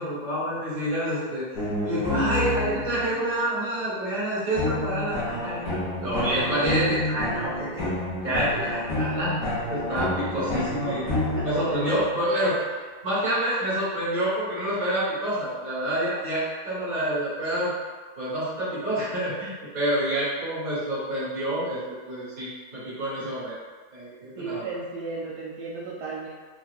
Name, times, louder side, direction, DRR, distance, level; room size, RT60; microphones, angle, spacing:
voice 1, 0.0-1.5 1.8-5.7 6.0-7.9 8.2-11.1 11.4-12.6 13.0-17.7 18.2-21.8 22.0-23.5 23.9-24.7, right 1 dB, 35° right, -9 dB, 1.6 m, -28 dB
sound 1, 1.5-3.2 4.5-12.3, left 1 dB, 55° left, 1.4 m, -29 dB
voice 2, 11.1-11.4 24.4-26.3, right 3 dB, 80° right, -5 dB, 1.2 m, -34 dB
3.5 x 3.2 x 2.4 m, 1.4 s
omnidirectional pair, 1.9 m